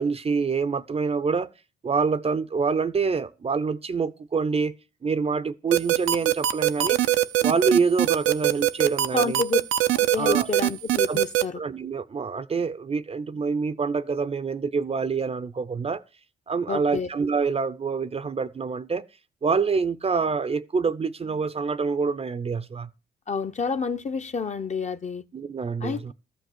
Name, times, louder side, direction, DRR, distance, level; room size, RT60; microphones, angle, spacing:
voice 1, 0.0-1.5 1.8-4.7 5.0-7.0 7.4-9.4 10.2-10.5 11.1-11.2 11.6-16.0 16.5-19.0 19.4-22.9 25.3-26.1, right 5 dB, 30° right, 0.6 m, -26 dB
sound 1, 5.7-11.4, right 14 dB, 85° right, 0.7 m, -21 dB
voice 2, 9.1-9.6 9.9-11.6 16.7-17.1 23.3-25.2 25.8-26.1, left 5 dB, 35° left, 0.9 m, -29 dB
13.5 x 5.2 x 7.9 m
cardioid pair, 90°, 20 cm